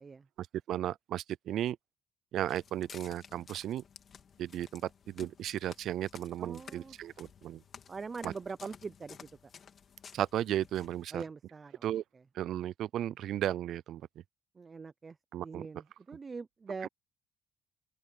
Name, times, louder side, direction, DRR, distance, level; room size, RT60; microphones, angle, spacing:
voice 1, 0.4-1.8 2.3-3.8 4.4-7.6 8.2-8.3 10.1-11.2 11.8-12.0 12.3-14.0 15.3-15.6 16.8-16.9, right 12 dB, 65° right, 0.4 m, -35 dB
Walk footsteps, 2.4-11.0, left 7 dB, 45° left, 2.3 m, -54 dB
voice 2, 6.4-7.0 7.9-9.3 11.1-12.2 14.5-16.9, right 4 dB, 30° right, 0.8 m, -43 dB
open air
cardioid pair, 105°, 0 cm